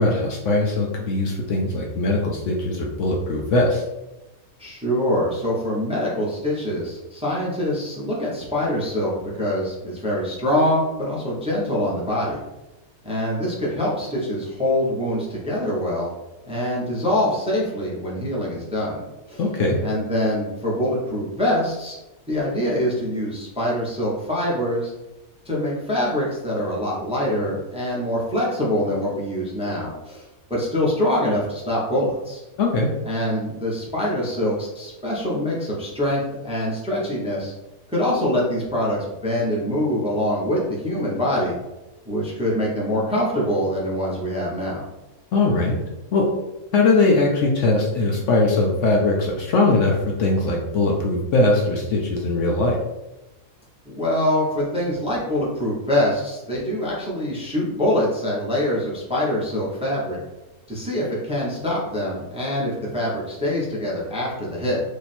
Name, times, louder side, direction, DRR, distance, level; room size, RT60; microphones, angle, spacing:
voice 1, 0.0-3.8 19.4-19.8 32.6-32.9 45.3-45.8 46.1-46.3 46.7-52.8, left 2 dB, 65° left, -1 dB, 0.9 m, -20 dB
voice 2, 4.6-12.4 13.0-16.1 16.5-19.0 19.3-19.4 19.8-22.0 22.3-24.9 25.4-32.4 33.0-37.5 37.9-41.6 42.1-44.8 53.8-60.2 60.7-64.8, left 1 dB, 5° right, -5 dB, 0.7 m, -24 dB
3.2 x 2.8 x 4.2 m, 1.0 s
omnidirectional pair, 1.5 m